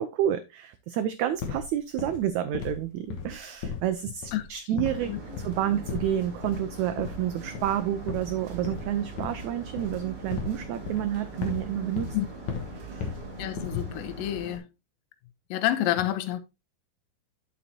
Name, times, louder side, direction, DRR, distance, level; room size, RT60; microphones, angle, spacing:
voice 1, 0.0-5.1 5.4-12.1 12.7-13.1, right 11 dB, 80° right, 1.7 m, -29 dB
sound 1, 1.4-1.7 2.0-2.3 2.5-2.8 3.1-3.9 4.2-4.5 4.8-5.1 5.4-5.6 5.9-6.2 6.4-6.7 7.0-7.3 7.5-7.8 8.1-9.5 9.8-10.6 10.9-11.7 12.0-12.2 12.5-13.3 13.6-13.9, left 6 dB, 60° left, 2.5 m, -35 dB
sound 2, 4.8-14.6, right 3 dB, 40° right, 3.3 m, -41 dB
voice 2, 5.1-5.4 12.1-12.3 13.4-14.7 15.5-16.4, left 13 dB, 85° left, 2.5 m, -28 dB
9.3 x 7.3 x 2.8 m
omnidirectional pair, 4.1 m